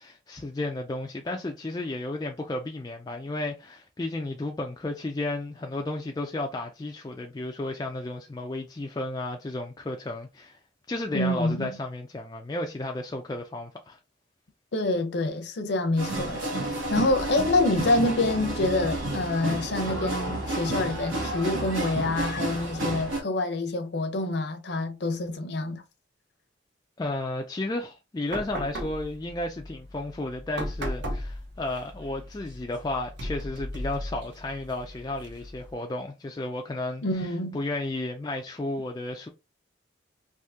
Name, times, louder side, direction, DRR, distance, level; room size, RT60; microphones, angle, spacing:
voice 1, 0.0-10.6 10.9-14.0 27.0-37.3 37.5-39.3, left 2 dB, 20° left, 0.3 m, -33 dB
voice 2, 11.1-11.8 14.7-25.8 37.0-37.6, left 2 dB, 55° left, 0.6 m, -27 dB
sound 1, 16.0-23.2, right 2 dB, 80° right, 1.5 m, -31 dB
sound 2, 28.3-35.7, equal, 60° right, 0.8 m, -37 dB
3.5 x 2.7 x 2.7 m
head